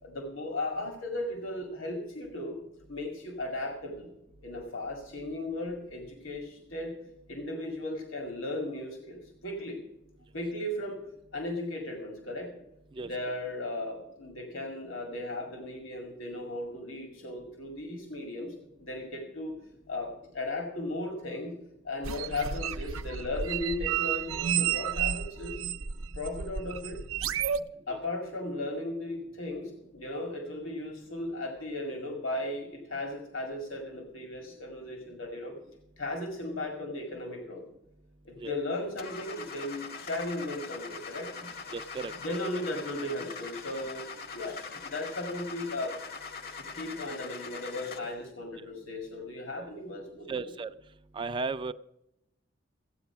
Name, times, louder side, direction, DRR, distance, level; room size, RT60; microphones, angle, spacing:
voice 1, 0.0-2.6 2.9-4.1 4.4-6.9 7.3-9.8 10.3-11.0 11.3-12.5 13.0-18.5 18.8-19.5 19.9-21.6 21.8-25.6 26.2-27.0 27.9-35.6 36.0-37.6 38.2-41.5 42.2-44.0 44.3-46.0 46.6-50.5, left 1 dB, 80° left, 3 dB, 2.2 m, -36 dB
sound 1, 22.0-27.6, right 8 dB, 90° right, 0.6 m, -31 dB
Car / Engine starting, 39.0-48.3, left 5 dB, 50° left, 1.0 m, -42 dB
voice 2, 41.7-42.1 49.6-49.7 50.3-50.7 51.1-51.7, right 4 dB, 25° right, 9 dB, 0.4 m, -34 dB
15.5 x 8.9 x 5.9 m, 0.84 s
head